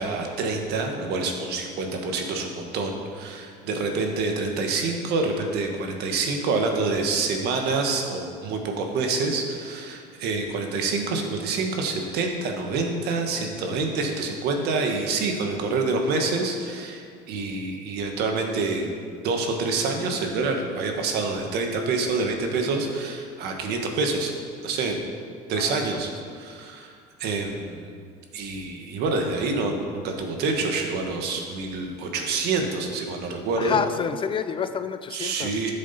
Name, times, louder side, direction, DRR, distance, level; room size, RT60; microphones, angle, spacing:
voice 1, 0.0-18.9 19.2-24.3 24.6-25.1 25.5-26.9 27.2-27.9 28.3-33.8 35.1-35.7, right 3 dB, 65° right, 3 dB, 1.5 m, -27 dB
voice 2, 33.6-35.5, left 6 dB, 30° left, 10 dB, 0.4 m, -28 dB
12.5 x 7.3 x 4.3 m, 2.2 s
cardioid pair, 125°, 18 cm